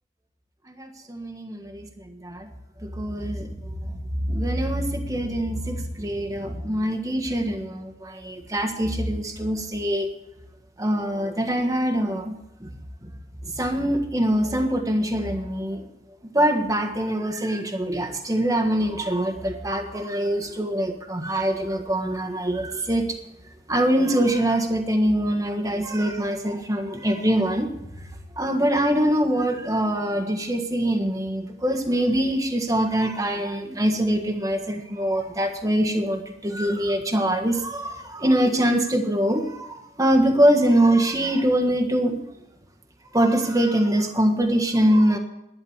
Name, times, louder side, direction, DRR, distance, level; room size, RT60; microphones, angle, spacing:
voice 1, 0.7-1.9 2.2-2.5 2.8-3.5 4.3-10.1 10.8-12.3 12.6-12.7 13.5-15.8 16.3-23.1 23.7-27.7 28.4-42.2 43.1-45.2, right 1 dB, 20° right, 5 dB, 1.4 m, -23 dB
11.5 x 10.5 x 7.3 m, 0.88 s
head